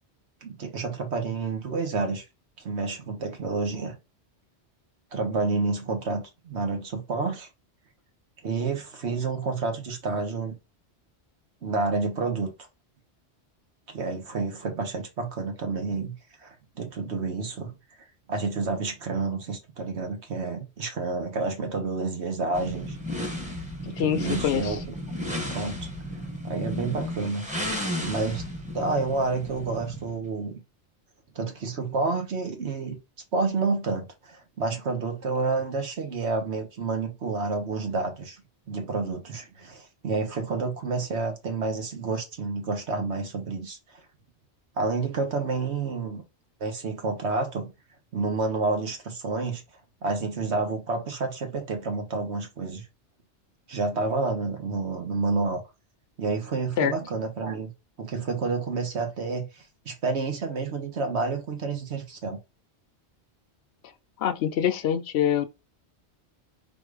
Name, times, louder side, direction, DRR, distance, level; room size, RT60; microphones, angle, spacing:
voice 1, 0.4-2.2 2.6-4.0 5.1-7.5 8.4-10.6 11.6-12.5 13.9-16.1 16.4-17.7 18.3-23.0 23.8-24.9 25.5-25.9 26.4-28.4 28.7-30.6 31.3-33.0 33.3-38.4 38.7-43.8 44.8-46.2 46.6-47.7 48.1-49.6 50.0-52.8 53.7-55.6 56.2-57.7 58.0-62.4, right 3 dB, 75° right, 1.5 m, -29 dB
sound 1, 22.5-30.1, left 1 dB, 5° right, 1.1 m, -34 dB
voice 2, 24.0-24.8 56.8-56.9 64.2-65.4, left 9 dB, 70° left, 0.8 m, -25 dB
4.2 x 2.6 x 4.8 m
omnidirectional pair, 1.2 m